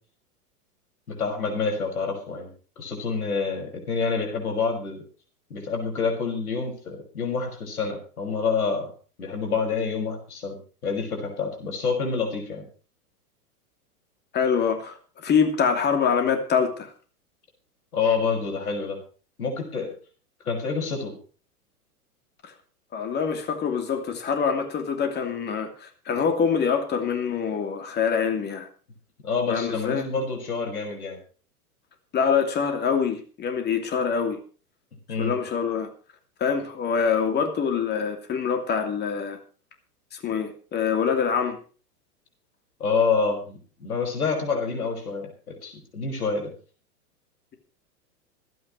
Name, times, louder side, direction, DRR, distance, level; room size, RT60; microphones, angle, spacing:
voice 1, 1.1-2.5 2.8-5.0 5.5-8.9 9.2-10.6 10.8-12.6 17.9-19.0 19.4-19.9 20.4-21.2 29.2-31.2 35.1-35.3 42.8-46.5, left 5 dB, 70° left, 6.1 m, -27 dB
voice 2, 14.3-16.9 22.4-22.5 22.9-28.7 29.5-30.1 32.1-34.4 35.2-35.9 36.4-39.4 40.1-41.6, left 6 dB, 20° left, 2.7 m, -25 dB
26.5 x 9.3 x 3.2 m
figure-of-eight pair, 100°, 46 cm